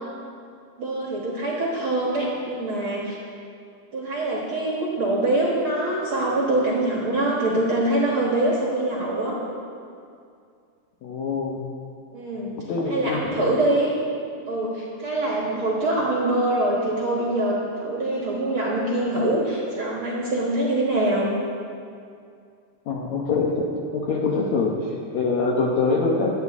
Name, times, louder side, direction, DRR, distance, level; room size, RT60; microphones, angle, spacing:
voice 1, 0.8-3.2 3.9-9.4 12.1-12.5 12.9-13.9 14.5-21.3 24.2-24.6, right 1 dB, 50° right, -4 dB, 1.7 m, -24 dB
voice 2, 11.0-11.6 12.7-13.3 22.9-26.3, left 4 dB, 70° left, -1 dB, 1.7 m, -24 dB
17.5 x 12.5 x 3.6 m, 2.4 s
omnidirectional pair, 4.5 m